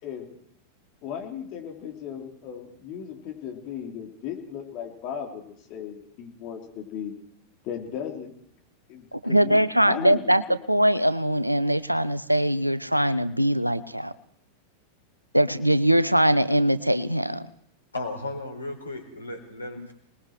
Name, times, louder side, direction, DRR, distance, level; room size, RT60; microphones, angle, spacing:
voice 1, 1.0-7.2 7.6-8.3 8.9-10.3, left 8 dB, 40° left, 1 dB, 4.0 m, -36 dB
voice 2, 9.1-10.4 10.7-14.1 15.3-17.5 19.8-19.9, equal, 90° right, 16 dB, 0.8 m, -22 dB
voice 3, 17.9-19.9, left 2 dB, 80° left, 4 dB, 4.5 m, -35 dB
27.0 x 20.5 x 4.8 m, 0.69 s
figure-of-eight pair, 90°, 0 cm